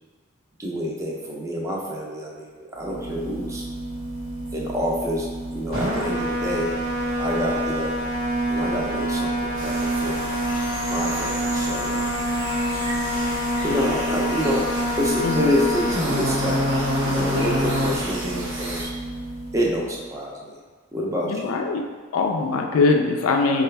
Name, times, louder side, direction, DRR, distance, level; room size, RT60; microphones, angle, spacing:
voice 1, 0.6-3.7 4.5-6.7 7.2-7.9 8.5-10.2 10.9-12.1 13.6-14.7 15.0-18.9 19.5-20.6 20.9-21.5, equal, 15° right, -3 dB, 0.6 m, -27 dB
sound 1, 2.8-20.0, equal, 80° right, 1.2 m, -26 dB
sound 2, 9.6-18.8, right 2 dB, 60° right, 0.8 m, -34 dB
voice 2, 21.3-21.8 22.1-23.6, left 3 dB, 80° left, 2 dB, 0.4 m, -21 dB
4.3 x 2.4 x 3.3 m, 1.5 s
head